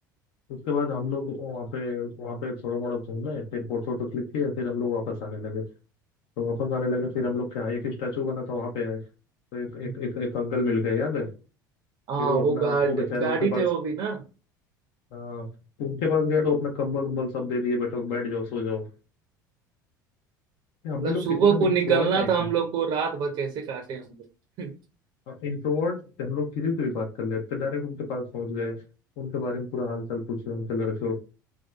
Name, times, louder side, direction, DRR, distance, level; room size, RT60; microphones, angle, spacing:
voice 1, 0.5-5.6 6.4-9.0 9.5-11.3 12.2-13.6 15.1-15.5 15.8-18.9 20.8-22.5 25.3-28.8 29.2-31.2, left 4 dB, 55° left, 1 dB, 0.6 m, -29 dB
voice 2, 12.1-14.2 21.0-24.2 24.6-24.7, right 6 dB, 45° right, 4 dB, 0.5 m, -25 dB
2.6 x 2.3 x 2.2 m, 0.33 s
figure-of-eight pair, 70°, 11 cm